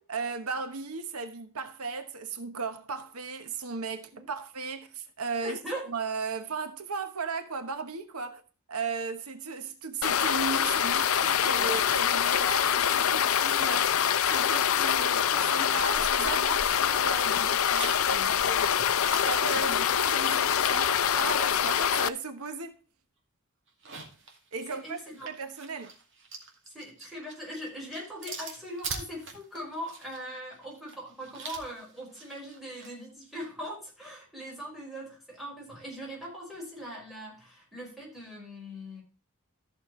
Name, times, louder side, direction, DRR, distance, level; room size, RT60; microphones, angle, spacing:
voice 1, 0.1-5.6 5.9-8.4 8.7-18.9 19.3-22.8 24.5-25.9, right 4 dB, 85° right, 1.1 m, -36 dB
voice 2, 5.4-5.9 11.5-11.8 17.7-18.3 24.7-25.3 26.7-39.0, equal, ahead, 5.2 m, -41 dB
sound 1, 10.0-22.1, left 9 dB, 70° left, 0.5 m, -25 dB
sound 2, 17.4-22.1 22.5-22.6 23.7-32.9, right 4 dB, 60° right, 2.3 m, -44 dB
14.0 x 6.7 x 3.2 m
head